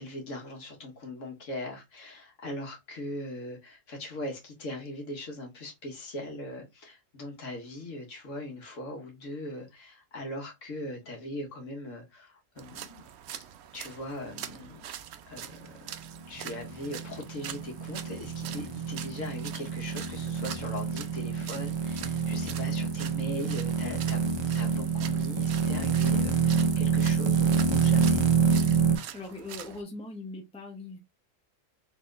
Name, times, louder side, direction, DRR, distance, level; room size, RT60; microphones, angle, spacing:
voice 1, 0.0-13.1 13.7-14.9 15.3-15.7 16.3-28.2, left 1 dB, 70° left, 1.7 m, -40 dB
sound 1, 12.6-29.8, right 10 dB, 65° right, 0.7 m, -44 dB
sound 2, 16.1-29.0, right 5 dB, 45° right, 0.3 m, -27 dB
voice 2, 29.1-31.0, left 3 dB, 5° left, 0.7 m, -40 dB
4.1 x 3.7 x 2.5 m
omnidirectional pair, 1.3 m